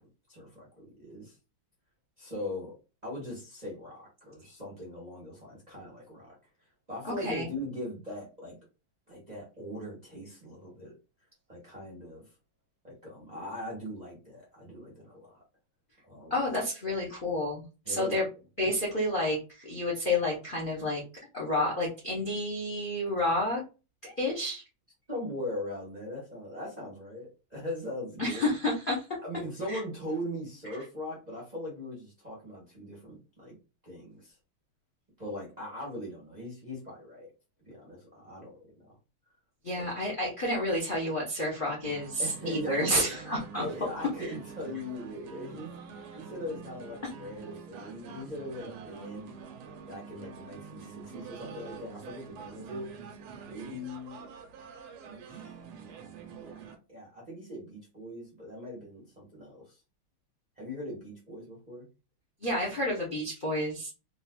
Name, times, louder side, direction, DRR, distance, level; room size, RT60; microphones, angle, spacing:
voice 1, 0.3-1.4 2.2-2.7 3.0-6.3 6.9-8.6 9.1-10.9 11.5-12.2 12.8-15.4 16.0-16.3 17.8-18.2 25.1-28.5 29.2-33.5 33.8-34.4 35.2-37.3 37.7-38.5 38.8-39.0 39.7-39.9 42.2-43.1 43.5-45.7 46.1-49.3 49.9-52.9 53.5-54.2 55.0-56.0 56.4-56.6 56.9-59.8 60.6-61.9, left 1 dB, 30° right, -5 dB, 0.8 m, -40 dB
voice 2, 7.0-7.5 16.3-18.2 18.6-21.0 21.3-23.6 24.0-24.6 28.2-29.1 29.7-29.8 39.6-43.6 44.2-44.3 62.4-63.9, left 1 dB, 45° left, -3 dB, 0.7 m, -30 dB
sound 1, 41.8-56.8, right 6 dB, 85° right, 1.6 m, -46 dB
4.1 x 2.7 x 2.2 m, 0.31 s
omnidirectional pair, 2.4 m